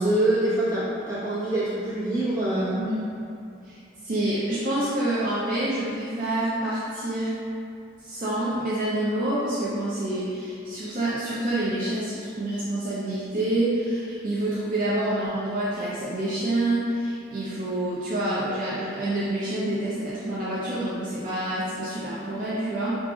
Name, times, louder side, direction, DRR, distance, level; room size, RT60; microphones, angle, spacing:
voice 1, 0.0-2.8, right 1 dB, 15° right, -11 dB, 1.0 m, -25 dB
voice 2, 3.6-7.3 8.0-22.9, right 1 dB, 45° right, -9 dB, 0.5 m, -27 dB
4.7 x 2.5 x 2.4 m, 2.5 s
head